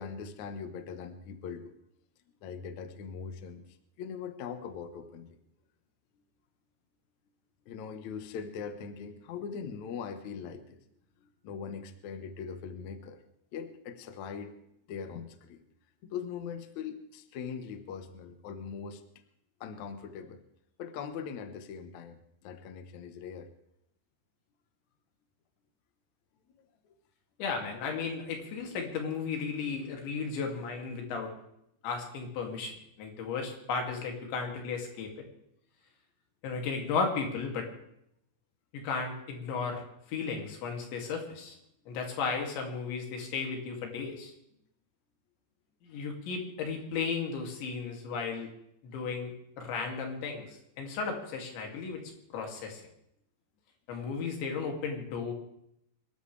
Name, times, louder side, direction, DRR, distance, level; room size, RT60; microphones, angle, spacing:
voice 1, 0.0-1.7 2.4-5.3 7.7-10.8 11.2-13.2 13.5-14.5 14.9-15.6 16.0-19.0 19.6-20.4 20.8-23.5 26.6-27.0 41.8-42.0, left 6 dB, 65° left, 8 dB, 1.9 m, -41 dB
voice 2, 27.4-31.3 31.8-32.7 33.0-35.1 36.4-37.7 38.7-39.8 40.1-41.6 41.9-44.3 45.8-48.5 48.8-52.0 52.3-52.9 53.9-55.3, left 5 dB, 85° left, 2 dB, 4.9 m, -34 dB
26.0 x 13.5 x 3.4 m, 0.77 s
omnidirectional pair, 5.1 m